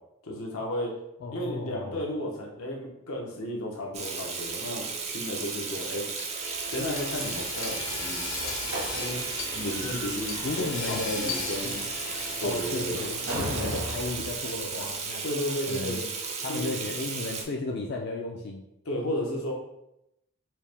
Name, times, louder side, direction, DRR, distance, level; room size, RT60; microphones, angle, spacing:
voice 1, 0.2-0.9 1.3-6.1 6.7-8.2 8.9-9.2 9.5-11.8 12.4-13.0 15.2-16.1 16.5-16.7 18.8-19.5, left 1 dB, 90° left, -1 dB, 0.9 m, -33 dB
voice 2, 1.2-2.0 10.4-11.3 11.6-11.8 12.4-15.2 15.6-16.0 16.4-18.7, left 3 dB, 50° left, 1 dB, 0.3 m, -34 dB
Water tap faucet / Sink (filling or washing), 3.9-17.4, right 5 dB, 30° right, 0.4 m, -35 dB
Hammer / Sawing, 6.2-14.4, left 4 dB, 65° left, 0.7 m, -38 dB
Slam, 7.7-15.1, right 1 dB, 80° right, 1.1 m, -39 dB
4.4 x 2.1 x 3.3 m, 0.84 s
head